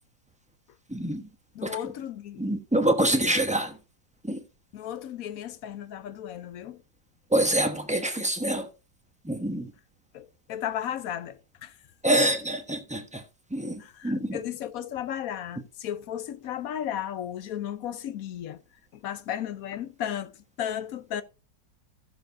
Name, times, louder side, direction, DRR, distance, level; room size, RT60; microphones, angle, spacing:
voice 1, 0.9-1.3 1.6-1.8 2.4-3.8 4.2-4.4 7.3-8.7 9.2-9.7 12.0-13.2 13.5-14.4, right 1 dB, 5° right, 0.7 m, -26 dB
voice 2, 1.5-2.5 4.7-6.8 10.1-11.7 13.8-18.6 18.9-21.2, left 10 dB, 65° left, 1.0 m, -34 dB
15.5 x 7.0 x 2.6 m
omnidirectional pair, 1.9 m